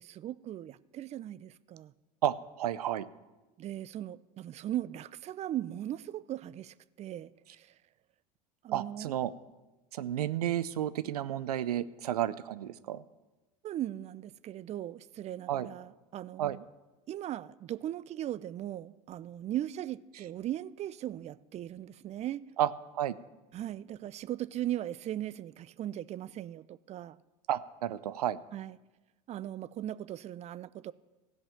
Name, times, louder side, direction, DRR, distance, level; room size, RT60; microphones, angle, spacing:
voice 1, 0.0-1.9 3.6-7.7 8.6-9.1 13.6-16.7 17.1-22.5 23.5-27.2 28.5-28.8 29.3-30.9, right 12 dB, 35° right, 0.4 m, -38 dB
voice 2, 2.2-3.1 8.7-9.3 9.9-13.0 15.5-15.7 16.4-16.6 22.6-23.1 27.5-28.4, right 11 dB, 90° right, 0.5 m, -32 dB
15.5 x 5.4 x 7.1 m
hypercardioid pair, 85°, 19 cm